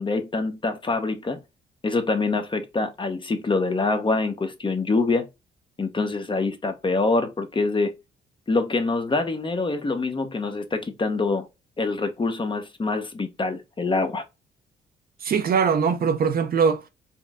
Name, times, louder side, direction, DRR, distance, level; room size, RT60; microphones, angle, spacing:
voice 1, 0.0-1.4 1.8-5.3 5.8-7.9 8.5-11.5 11.8-14.2, left 3 dB, 25° left, 0.8 m, -25 dB
voice 2, 15.2-16.9, right 6 dB, 50° right, 0.6 m, -21 dB
4.4 x 2.0 x 3.5 m
cardioid pair, 90°, 20 cm